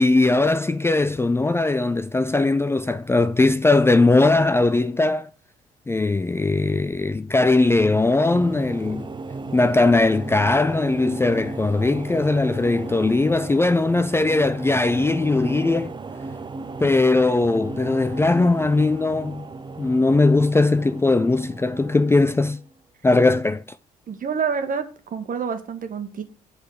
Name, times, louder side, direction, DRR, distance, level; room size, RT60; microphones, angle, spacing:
voice 1, 0.0-5.3 5.9-9.1 9.5-15.9 16.8-19.5 19.8-22.6 23.0-23.6, left 2 dB, 15° left, 0.4 m, -19 dB
sound 1, 7.4-22.7, right 3 dB, 25° right, 0.7 m, -36 dB
voice 2, 24.1-26.2, right 6 dB, 45° right, 1.5 m, -28 dB
7.8 x 4.1 x 6.7 m
hypercardioid pair, 50°, 19 cm